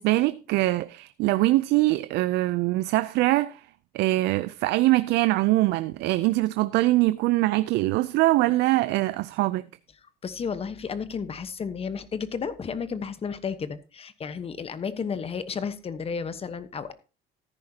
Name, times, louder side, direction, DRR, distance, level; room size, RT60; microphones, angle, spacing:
voice 1, 0.0-3.7 3.9-9.6, right 18 dB, 85° right, 0.5 m, -23 dB
voice 2, 10.2-16.9, left 6 dB, 35° left, 1.1 m, -32 dB
13.5 x 10.5 x 2.8 m
cardioid pair, 110°, 17 cm